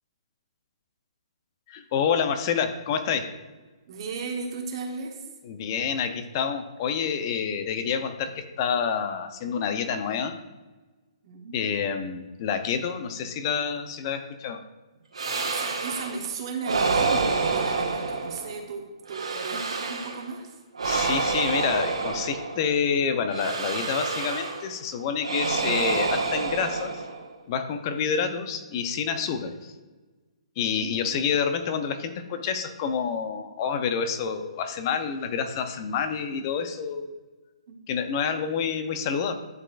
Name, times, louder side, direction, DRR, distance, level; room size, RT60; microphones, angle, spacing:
voice 1, 1.7-3.3 5.4-10.4 11.5-14.6 20.8-27.0 27.5-29.7 30.6-37.1 37.9-39.3, left 6 dB, 40° left, 8 dB, 0.7 m, -28 dB
voice 2, 3.9-5.3 11.2-11.7 15.2-20.6 30.6-31.2 37.7-37.8, right 4 dB, 55° right, 1 dB, 1.0 m, -36 dB
sound 1, 15.1-16.2 16.6-18.6 19.1-20.3 20.7-22.7 23.3-24.7 25.2-27.3, right 4 dB, 85° right, 1.5 m, -28 dB
10.5 x 3.9 x 2.5 m, 1.2 s
hypercardioid pair, 140°, 3 cm